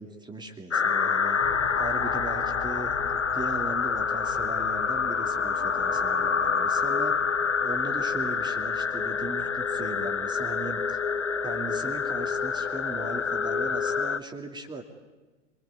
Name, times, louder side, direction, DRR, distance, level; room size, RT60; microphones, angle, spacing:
voice 1, 0.0-1.4 1.7-7.1 7.6-11.0 11.4-14.8, right 3 dB, 10° right, 4 dB, 2.6 m, -38 dB
sound 1, 0.7-14.2, left 6 dB, 85° left, 1.0 m, -27 dB
sound 2, 1.4-14.0, left 6 dB, 45° left, 2.7 m, -49 dB
27.0 x 22.5 x 9.6 m, 1.2 s
figure-of-eight pair, 90°, 35 cm